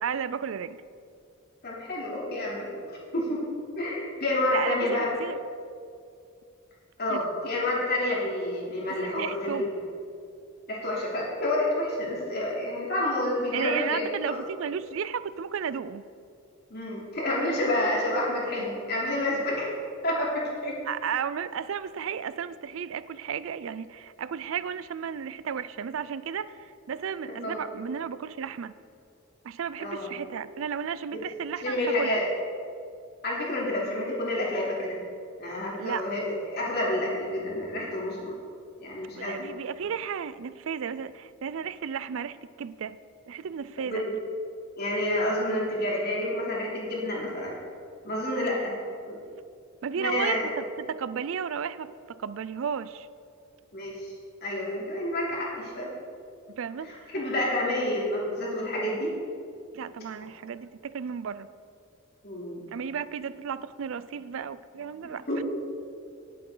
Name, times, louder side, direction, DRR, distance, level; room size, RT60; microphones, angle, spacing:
voice 1, 0.0-0.8 4.5-5.4 7.1-7.2 9.0-9.7 13.5-16.0 18.6-18.7 20.9-28.7 29.4-32.2 35.8-36.1 39.2-43.0 43.3-44.0 49.8-53.1 56.6-57.1 59.7-61.5 62.7-65.3, right 7 dB, 65° right, 16 dB, 0.4 m, -33 dB
voice 2, 1.6-3.4 3.7-5.1 7.0-9.6 10.7-14.4 16.7-19.7 20.0-20.8 27.4-27.6 29.8-30.1 31.1-31.2 31.6-32.2 33.2-35.0 35.4-38.3 38.8-39.4 43.8-44.2 44.8-47.5 48.0-48.7 49.1-49.2 49.9-50.5 53.7-54.1 54.4-55.9 56.8-59.1 62.2-62.6 65.3-65.4, left 1 dB, 50° left, -4 dB, 3.1 m, -29 dB
18.5 x 8.5 x 3.9 m, 2.4 s
head